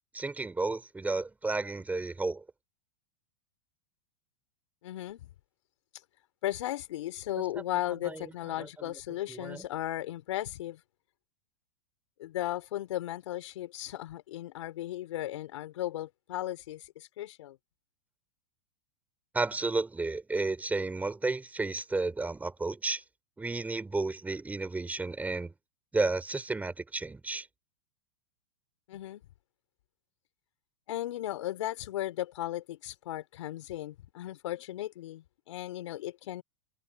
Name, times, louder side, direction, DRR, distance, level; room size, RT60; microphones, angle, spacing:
voice 1, 0.1-2.4 8.0-8.3 8.6-9.0 9.3-9.6 19.3-23.0 23.4-25.5 25.9-27.5, right 3 dB, 10° right, 5.7 m, -32 dB
voice 2, 4.8-5.3 6.4-10.8 12.2-17.6 28.9-29.2 30.9-36.4, left 14 dB, 75° left, 4.5 m, -36 dB
hypercardioid pair, 120°, 16 cm